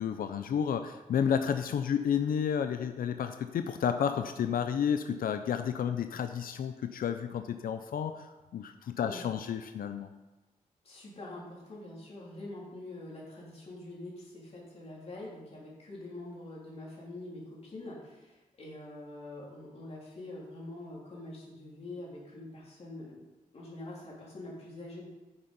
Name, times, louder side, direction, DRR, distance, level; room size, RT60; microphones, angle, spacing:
voice 1, 0.0-10.1, left 8 dB, 90° left, 8 dB, 0.5 m, -31 dB
voice 2, 10.8-23.2 23.5-25.0, left 2 dB, 45° left, -4 dB, 3.2 m, -45 dB
9.5 x 7.0 x 5.2 m, 1.1 s
wide cardioid pair, 165°, 14 cm